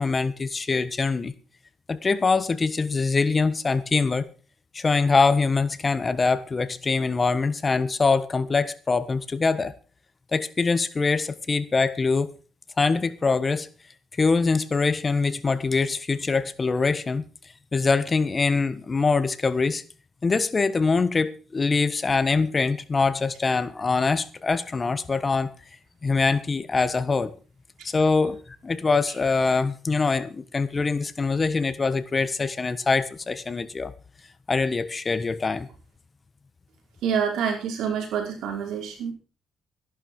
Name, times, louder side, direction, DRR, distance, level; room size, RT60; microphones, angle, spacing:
voice 1, 0.0-1.3 1.9-4.3 4.7-9.7 10.3-12.3 12.8-13.7 14.2-17.2 17.7-19.8 20.2-25.5 26.0-27.3 27.8-28.4 28.6-33.9 34.5-35.7, left 4 dB, 30° left, 1.3 m, -23 dB
voice 2, 37.0-39.1, right 7 dB, 85° right, 5.0 m, -27 dB
14.5 x 11.5 x 4.8 m
cardioid pair, 90°, 0 cm